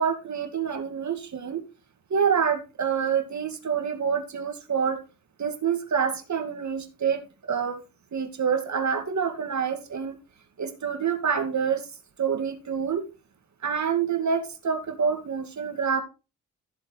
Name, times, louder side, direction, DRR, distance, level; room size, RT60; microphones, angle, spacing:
voice 1, 0.0-1.6 2.1-5.0 5.4-7.2 7.5-7.8 8.1-10.1 10.6-11.8 12.2-13.0 13.6-16.0, right 7 dB, 55° right, 7 dB, 2.4 m, -27 dB
14.5 x 7.5 x 3.3 m, 0.31 s
supercardioid pair, 60°, 35 cm